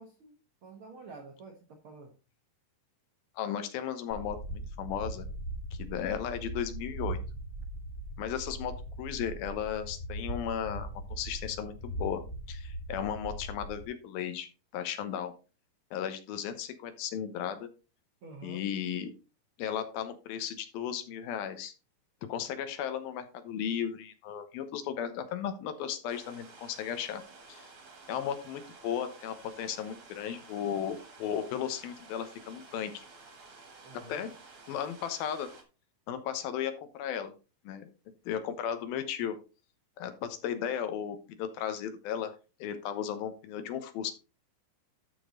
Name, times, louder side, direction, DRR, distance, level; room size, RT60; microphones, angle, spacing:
voice 1, 0.0-2.2 18.2-18.6 29.7-29.8 33.8-34.3, right 3 dB, 90° right, 4 dB, 1.1 m, -49 dB
voice 2, 3.4-5.3 5.8-7.2 8.2-12.2 12.5-14.5 14.7-15.3 15.9-17.7 18.4-19.1 19.6-21.7 22.2-27.2 27.5-27.7 28.1-33.0 34.1-34.3 34.7-35.5 36.1-37.3 37.6-37.9 38.3-39.4 40.0-42.3 42.6-44.1, left 9 dB, 75° left, 9 dB, 2.8 m, -35 dB
sound 1, 4.1-13.9, right 1 dB, 30° left, 0.7 m, -39 dB
sound 2, 26.1-35.6, right 4 dB, 45° right, 2.0 m, -53 dB
12.5 x 5.4 x 3.9 m, 0.31 s
omnidirectional pair, 4.6 m